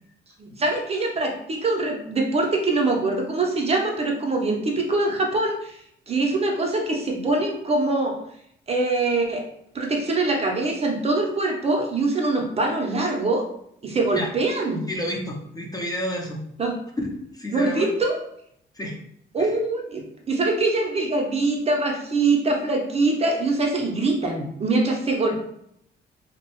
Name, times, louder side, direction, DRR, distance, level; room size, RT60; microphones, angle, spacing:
voice 1, 0.4-5.8 6.1-8.2 8.7-9.5 9.7-13.5 13.8-14.9 16.6-16.8 17.5-18.2 19.3-25.5, right 2 dB, 30° right, 1 dB, 0.5 m, -23 dB
voice 2, 14.9-16.4 17.0-17.9 18.8-19.0 19.4-19.5, equal, 20° left, 0 dB, 0.5 m, -30 dB
2.6 x 2.0 x 2.8 m, 0.72 s
cardioid pair, 90°, 20 cm